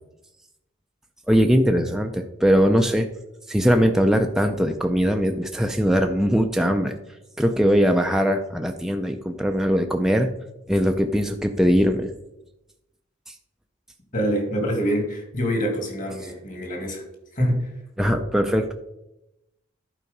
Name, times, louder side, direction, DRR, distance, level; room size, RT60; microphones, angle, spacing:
voice 1, 1.3-3.1 3.5-6.9 7.4-10.3 10.7-12.1 13.3-13.4 18.0-18.7, equal, ahead, 3 dB, 0.4 m, -20 dB
voice 2, 14.1-17.0 17.3-17.7, equal, 40° left, 2 dB, 2.2 m, -25 dB
11.0 x 4.8 x 5.3 m, 0.91 s
head